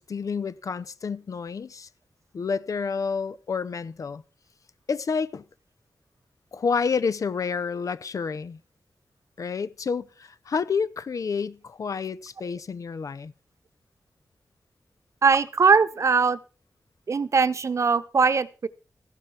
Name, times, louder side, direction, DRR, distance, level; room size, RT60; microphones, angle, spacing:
voice 1, 0.0-1.9 2.3-4.2 4.9-5.4 6.5-8.6 9.4-13.3, left 5 dB, 65° left, 0.7 m, -29 dB
voice 2, 15.2-16.4 17.1-18.7, right 5 dB, 55° right, 0.9 m, -21 dB
14.5 x 11.5 x 4.4 m
wide cardioid pair, 110°, 6 cm